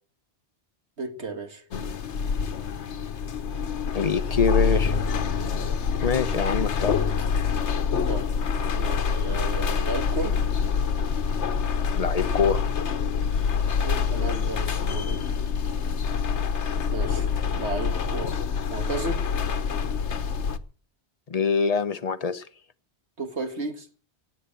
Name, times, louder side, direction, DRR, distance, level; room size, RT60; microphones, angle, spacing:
voice 1, 1.0-1.6 8.0-8.3 8.8-10.4 13.8-15.3 16.9-18.4 18.7-19.2 23.2-23.9, right 3 dB, 75° right, 2.2 m, -33 dB
sound 1, 1.7-20.6, left 6 dB, 85° left, 1.3 m, -26 dB
voice 2, 3.9-5.0 6.0-7.0 11.9-12.6 21.3-22.4, left 5 dB, 35° left, 0.9 m, -24 dB
17.5 x 8.3 x 7.6 m
omnidirectional pair, 1.1 m